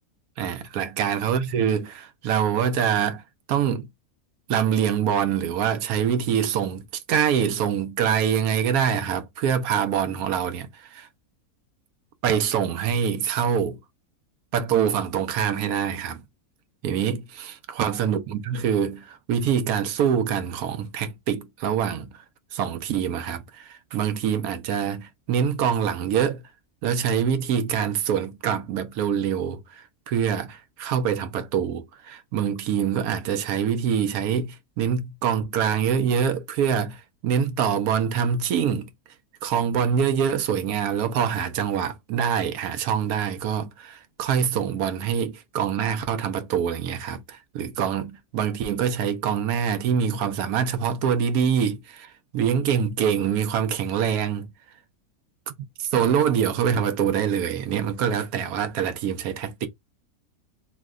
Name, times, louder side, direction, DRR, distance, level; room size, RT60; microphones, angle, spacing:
voice 1, 0.4-3.2 3.5-3.9 4.5-11.1 12.2-13.8 14.5-16.2 16.8-22.2 22.5-26.4 26.8-38.9 39.4-54.5 55.8-59.7, right 8 dB, 75° right, 1.1 m, -25 dB
3.1 x 2.2 x 3.5 m
omnidirectional pair, 1.6 m